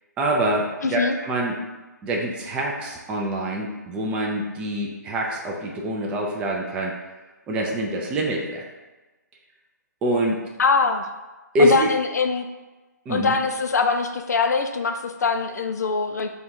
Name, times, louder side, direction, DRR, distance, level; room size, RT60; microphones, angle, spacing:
voice 1, 0.2-1.6 2.0-6.9 7.5-8.6 10.0-10.4 11.5-11.9 13.1-13.3, right 1 dB, 10° right, -1 dB, 0.3 m, -25 dB
voice 2, 0.8-1.2 10.6-11.1 11.6-12.5 13.1-16.3, left 4 dB, 65° left, 6 dB, 0.4 m, -23 dB
3.5 x 2.3 x 4.2 m, 1.2 s
figure-of-eight pair, 135°, 10 cm